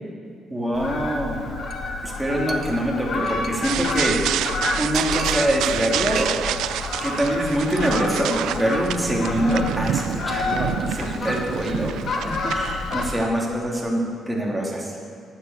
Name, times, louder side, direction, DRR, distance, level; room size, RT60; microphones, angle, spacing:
voice 1, 0.5-1.4 2.0-4.2 4.8-6.3 7.0-14.9, equal, 10° right, -3 dB, 3.0 m, -24 dB
Fowl, 0.7-13.1, left 3 dB, 55° left, 1.5 m, -29 dB
Chink clink, 1.7-1.9 2.1-2.2 2.5-3.8 4.1-4.2 4.4-4.5 4.9-5.8 6.1-6.7 6.9-7.2 7.5-7.8 8.1-8.3, right 5 dB, 50° right, 1.0 m, -38 dB
sound 1, 3.6-13.3, right 11 dB, 85° right, 0.3 m, -28 dB
9.5 x 9.3 x 7.4 m, 2.4 s
cardioid pair, 90°, 0 cm